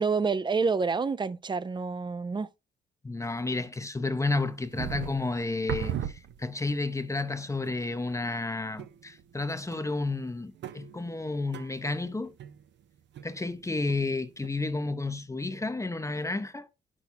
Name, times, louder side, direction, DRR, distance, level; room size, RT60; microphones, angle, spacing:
voice 1, 0.0-2.5, right 4 dB, 25° right, 0.5 m, -28 dB
voice 2, 3.0-12.3 13.2-16.7, left 3 dB, 15° left, 0.7 m, -31 dB
sound 1, 4.3-6.8 7.2-7.3 7.7-8.2 8.8-9.4 9.7-13.6 13.9-14.5, right 9 dB, 65° right, 0.7 m, -39 dB
9.5 x 6.1 x 2.7 m
cardioid pair, 90°, 20 cm